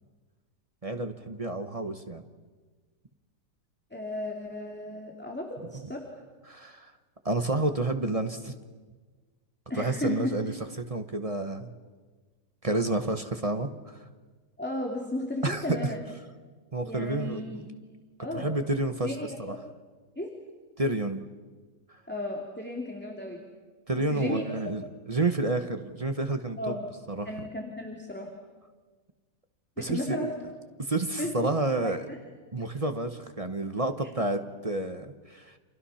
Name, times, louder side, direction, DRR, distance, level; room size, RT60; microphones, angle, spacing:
voice 1, 0.8-2.2 6.5-6.9 7.2-8.5 9.7-11.7 12.6-14.1 15.4-15.9 16.7-17.7 18.3-19.6 20.8-21.2 23.9-26.8 27.1-27.5 29.8-30.5 30.8-32.1 32.5-35.6, right 2 dB, 25° right, 7 dB, 1.0 m, -30 dB
voice 2, 3.9-6.1 9.7-10.3 14.6-16.0 16.8-17.6 18.2-18.6 19.0-19.6 20.2-20.3 22.1-23.4 24.0-24.4 26.6-26.8 27.3-28.3 29.8-30.3 31.2-31.3 31.8-32.2, left 1 dB, 5° left, 0 dB, 2.5 m, -34 dB
30.0 x 27.5 x 5.8 m, 1.4 s
omnidirectional pair, 1.8 m